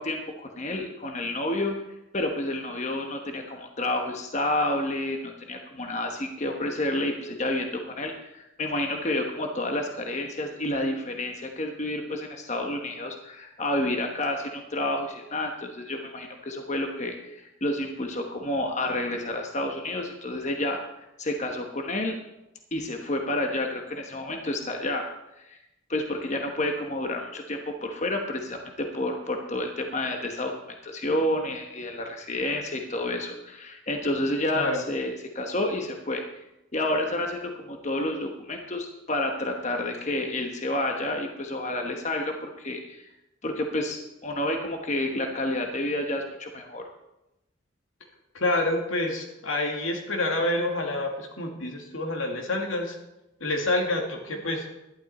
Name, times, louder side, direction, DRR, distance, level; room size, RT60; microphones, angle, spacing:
voice 1, 0.0-1.7 2.1-20.8 21.2-22.1 22.7-25.1 25.4-25.6 25.9-30.5 30.8-36.2 36.7-43.0 43.4-46.8, left 1 dB, 35° left, 3 dB, 1.1 m, -30 dB
voice 2, 48.3-53.0 53.4-54.6, left 2 dB, 90° left, 2 dB, 2.2 m, -27 dB
12.0 x 11.5 x 4.2 m, 0.92 s
head